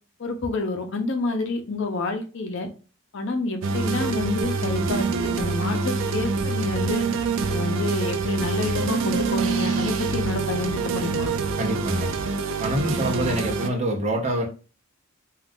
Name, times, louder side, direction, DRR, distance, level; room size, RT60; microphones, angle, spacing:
voice 1, 0.2-2.7 3.1-7.0 7.5-11.3, left 2 dB, 60° left, 5 dB, 0.6 m, -28 dB
sound 1, 3.6-13.7, right 4 dB, 65° right, 0.3 m, -26 dB
voice 2, 11.6-12.1 12.6-14.5, right 1 dB, 35° right, 0 dB, 0.7 m, -25 dB
2.4 x 2.3 x 3.4 m, 0.35 s
head